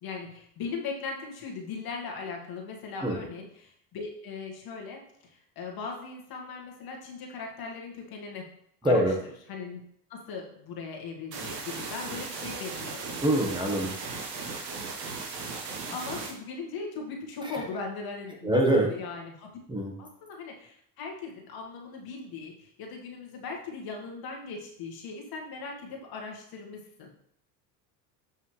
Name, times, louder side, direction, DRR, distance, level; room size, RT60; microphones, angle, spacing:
voice 1, 0.0-8.5 8.8-9.1 9.5-9.8 10.1-13.2 15.9-19.6 20.0-27.1, left 4 dB, 50° left, 1 dB, 1.9 m, -39 dB
voice 2, 8.8-9.2 13.2-13.9 18.4-18.9 19.7-19.9, right 1 dB, 10° right, 0 dB, 1.3 m, -24 dB
sound 1, 11.3-16.3, right 4 dB, 90° right, 1.5 m, -37 dB
7.5 x 5.6 x 3.3 m, 0.70 s
supercardioid pair, 95°, 48 cm